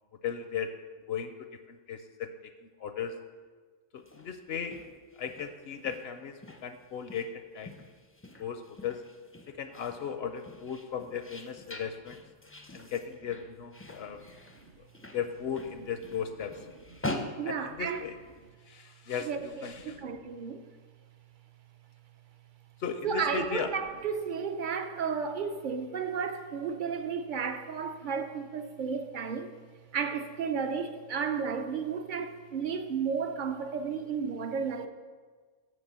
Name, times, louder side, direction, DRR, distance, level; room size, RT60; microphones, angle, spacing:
voice 1, 0.2-0.7 1.1-2.3 2.6-3.1 3.9-4.8 5.2-7.7 8.4-9.0 9.5-12.2 12.7-14.2 14.8-14.9 15.1-16.7 17.5-18.2 18.7-20.0 22.8-23.7, left 7 dB, 65° left, 0.7 m, -36 dB
sound 1, 4.0-18.4, left 1 dB, 15° left, 0.4 m, -44 dB
voice 2, 17.4-18.0 19.3-19.4 20.0-20.6 23.0-29.5 29.9-34.9, right 6 dB, 50° right, 0.6 m, -33 dB
6.7 x 6.2 x 7.3 m
omnidirectional pair, 1.3 m